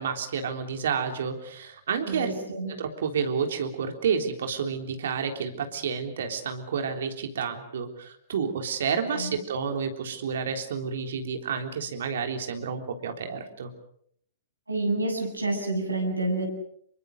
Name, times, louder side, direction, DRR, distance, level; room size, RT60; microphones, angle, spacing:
voice 1, 0.0-2.3 2.8-13.7, right 6 dB, 60° right, 6 dB, 3.6 m, -30 dB
voice 2, 2.1-2.7 9.1-9.4 14.7-16.5, right 2 dB, 85° right, 1 dB, 7.9 m, -28 dB
27.5 x 23.5 x 6.6 m, 0.65 s
figure-of-eight pair, 105°, 0 cm